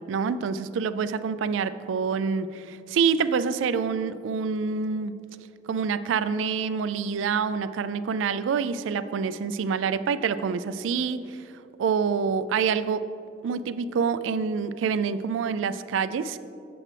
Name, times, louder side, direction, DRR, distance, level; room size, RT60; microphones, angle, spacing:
voice 1, 0.1-5.1 5.7-11.4 11.8-13.0 13.4-16.4, right 6 dB, 85° right, 13 dB, 0.3 m, -26 dB
7.7 x 7.3 x 3.3 m, 2.6 s
head